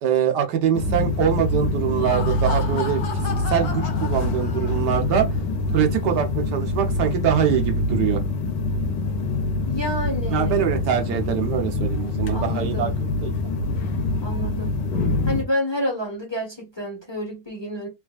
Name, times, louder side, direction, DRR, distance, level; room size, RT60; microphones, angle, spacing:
voice 1, 0.0-5.3 5.7-8.2 10.3-12.9 13.2-13.3, right 9 dB, 80° right, 1.4 m, -23 dB
sound 1, 0.7-15.4, left 2 dB, 85° left, 1.4 m, -25 dB
Laughter, 1.8-5.1, left 6 dB, 65° left, 1.3 m, -34 dB
voice 2, 9.6-10.6 12.3-12.9 14.2-14.8 15.2-17.9, equal, 15° left, 1.3 m, -29 dB
3.4 x 3.2 x 2.4 m
omnidirectional pair, 1.8 m